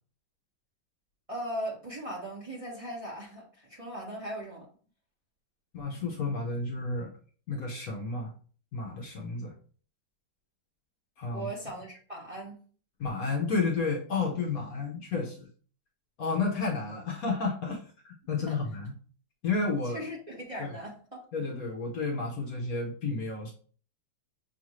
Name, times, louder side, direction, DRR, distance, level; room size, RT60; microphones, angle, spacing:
voice 1, 1.3-4.7 11.3-12.5 18.5-18.6 19.9-21.2, right 1 dB, 20° right, 1.2 m, -38 dB
voice 2, 5.7-7.1 7.5-8.3 8.7-9.5 11.2-11.5 13.0-15.5 16.2-18.9 19.4-20.0 20.6-20.7 21.3-23.5, left 4 dB, 60° left, 1.2 m, -31 dB
5.6 x 2.5 x 3.0 m
omnidirectional pair, 2.0 m